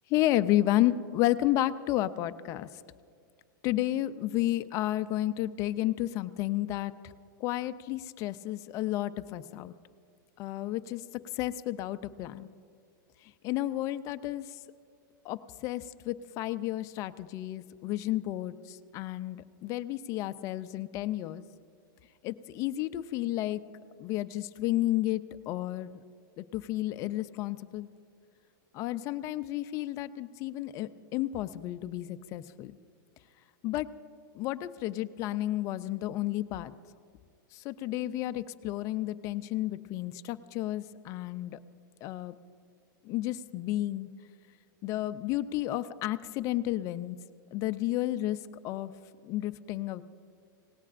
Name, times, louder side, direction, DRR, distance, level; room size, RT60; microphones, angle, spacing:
voice 1, 0.1-2.7 3.6-6.9 7.4-9.7 10.4-12.5 13.4-14.5 15.2-21.4 22.2-23.6 24.0-26.0 26.4-27.9 28.7-32.7 33.6-33.9 34.3-36.7 37.5-41.6 42.0-42.3 43.0-44.1 44.8-47.2 47.5-48.4 48.6-48.9 49.2-50.0, left 15 dB, 30° left, 13 dB, 0.4 m, -31 dB
26.5 x 18.0 x 2.5 m, 2.2 s
supercardioid pair, 155°, 11 cm